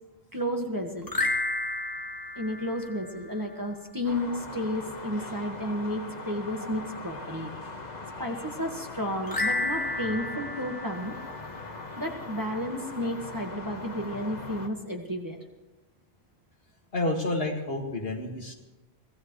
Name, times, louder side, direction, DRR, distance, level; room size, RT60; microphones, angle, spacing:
voice 1, 0.3-1.1 2.3-7.5 8.2-11.2 12.0-15.4, equal, 20° right, 1 dB, 1.6 m, -32 dB
sound 1, 1.0-3.5 9.2-11.9, left 2 dB, 20° left, 1.3 m, -32 dB
sound 2, 4.0-14.7, left 3 dB, 40° left, 1.4 m, -41 dB
voice 2, 16.9-18.5, left 2 dB, 60° left, 1 dB, 2.3 m, -29 dB
25.0 x 16.5 x 3.2 m, 1.0 s
omnidirectional pair, 1.1 m